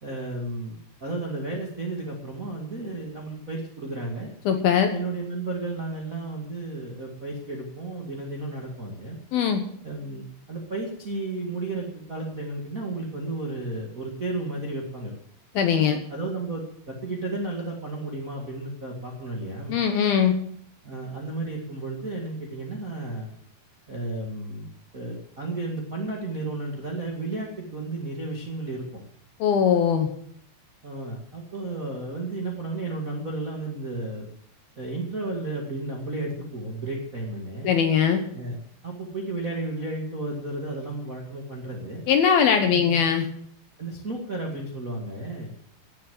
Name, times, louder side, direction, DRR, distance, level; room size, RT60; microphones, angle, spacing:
voice 1, 0.0-4.3 4.9-9.2 9.8-15.1 15.8-19.8 20.8-23.3 23.9-28.8 30.8-34.3 34.7-37.7 38.3-38.6 38.8-42.0 42.6-43.0 43.8-45.5, right 2 dB, 40° right, -1 dB, 1.1 m, -33 dB
voice 2, 4.5-4.9 9.3-9.6 15.6-16.0 19.7-20.4 29.4-30.1 37.6-38.2 42.1-43.3, left 7 dB, 70° left, 6 dB, 2.5 m, -21 dB
16.0 x 7.4 x 7.8 m, 0.65 s
omnidirectional pair, 5.4 m